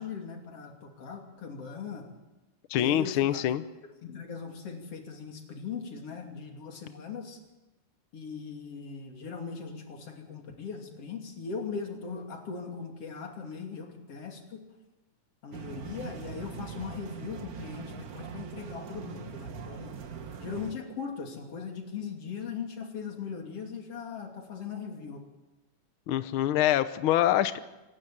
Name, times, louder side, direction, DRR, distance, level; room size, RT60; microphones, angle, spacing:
voice 1, 0.0-2.1 2.8-3.4 4.0-7.4 8.1-14.6 15.4-20.0 20.4-25.2, left 5 dB, 50° left, 3 dB, 3.7 m, -39 dB
voice 2, 2.7-3.6 26.1-27.6, left 12 dB, 85° left, 12 dB, 1.1 m, -25 dB
sound 1, 15.5-20.7, right 7 dB, 75° right, 0.8 m, -42 dB
26.5 x 12.5 x 8.8 m, 1.1 s
omnidirectional pair, 3.4 m